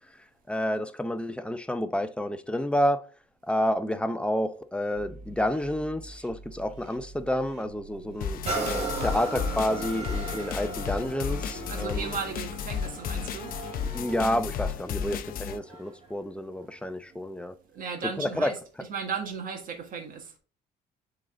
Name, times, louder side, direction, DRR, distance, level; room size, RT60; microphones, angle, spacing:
voice 1, 0.5-3.0 3.5-12.1 13.8-17.5 18.2-18.5, left 1 dB, 5° left, 0.6 m, -29 dB
sound 1, 4.9-10.3, right 4 dB, 85° right, 1.7 m, -48 dB
sound 2, 8.2-15.6, left 7 dB, 60° left, 0.6 m, -33 dB
sound 3, 8.4-16.1 16.6-16.7, right 3 dB, 35° right, 2.5 m, -37 dB
voice 2, 11.7-13.5 17.7-20.3, right 6 dB, 55° right, 1.7 m, -35 dB
7.5 x 3.9 x 3.8 m
cardioid pair, 110°, 17 cm